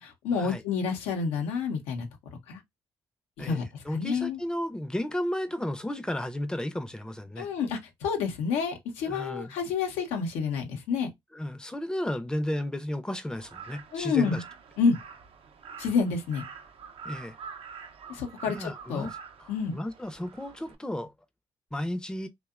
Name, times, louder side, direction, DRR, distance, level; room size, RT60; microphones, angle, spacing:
voice 1, 0.0-2.1 2.5-2.6 3.4-4.4 7.4-11.1 13.9-14.4 14.8-15.0 15.8-16.4 18.1-19.1 19.5-19.8, left 5 dB, 85° left, 0.6 m, -29 dB
voice 2, 3.4-7.5 9.1-9.5 11.3-14.4 17.0-17.4 18.5-19.1 19.4-21.1 21.7-22.3, left 1 dB, 5° left, 0.5 m, -33 dB
Crow, 13.4-20.7, right 6 dB, 60° right, 0.5 m, -46 dB
2.7 x 2.2 x 2.3 m
supercardioid pair, 55°, 11 cm